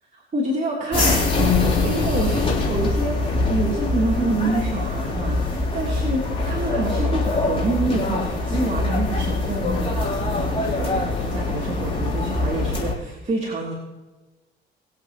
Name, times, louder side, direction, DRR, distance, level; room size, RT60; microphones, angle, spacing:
voice 1, 0.1-13.7, right 2 dB, 35° right, -4 dB, 3.2 m, -27 dB
sound 1, 0.9-12.9, left 3 dB, 25° left, 3.5 m, -23 dB
21.5 x 8.1 x 3.0 m, 1.2 s
cardioid pair, 90°, 20 cm